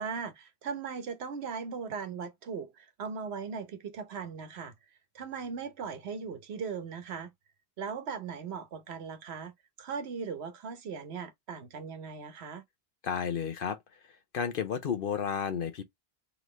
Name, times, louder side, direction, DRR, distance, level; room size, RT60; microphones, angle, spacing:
voice 1, 0.0-4.7 5.1-7.3 7.8-9.5 9.8-12.6, right 6 dB, 85° right, 1.1 m, -38 dB
voice 2, 13.0-13.8 14.3-15.8, left 7 dB, 60° left, 0.8 m, -32 dB
3.9 x 3.0 x 3.1 m
omnidirectional pair, 1.1 m